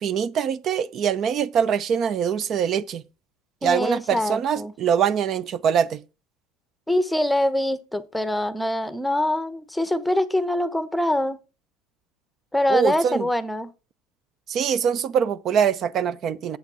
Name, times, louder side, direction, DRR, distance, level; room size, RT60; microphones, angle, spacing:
voice 1, 0.0-3.0 3.6-6.0 12.7-13.3 14.5-16.6, right 7 dB, 40° right, 0.7 m, -23 dB
voice 2, 3.6-4.7 6.9-11.4 12.5-13.7, left 1 dB, 5° left, 0.9 m, -24 dB
8.1 x 7.7 x 5.0 m
supercardioid pair, 130°, 0 cm